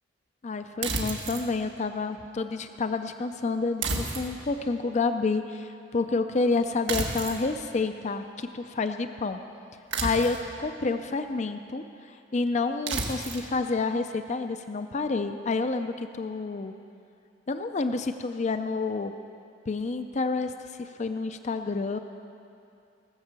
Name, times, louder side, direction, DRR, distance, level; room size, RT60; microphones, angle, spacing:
voice 1, 0.4-9.4 10.0-11.8 12.3-16.7 17.5-19.1 19.7-20.5 20.8-22.0, left 3 dB, 40° left, 8 dB, 0.5 m, -29 dB
sound 1, 0.8-1.5 3.8-4.6 6.9-7.5 9.9-10.6 12.9-13.5, right 3 dB, 90° right, 1.5 m, -31 dB
19.0 x 6.6 x 7.4 m, 2.6 s
head